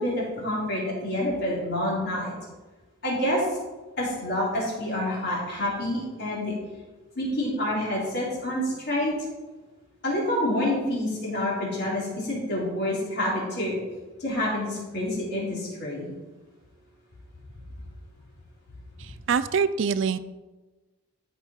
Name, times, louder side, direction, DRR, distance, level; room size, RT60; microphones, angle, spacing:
voice 1, 0.0-2.3 3.0-3.4 4.0-6.5 7.1-9.1 10.0-13.7 14.2-16.0, left 1 dB, 50° left, -5 dB, 3.3 m, -27 dB
voice 2, 19.3-20.2, right 6 dB, 60° right, 14 dB, 0.4 m, -24 dB
12.5 x 5.2 x 4.4 m, 1.2 s
head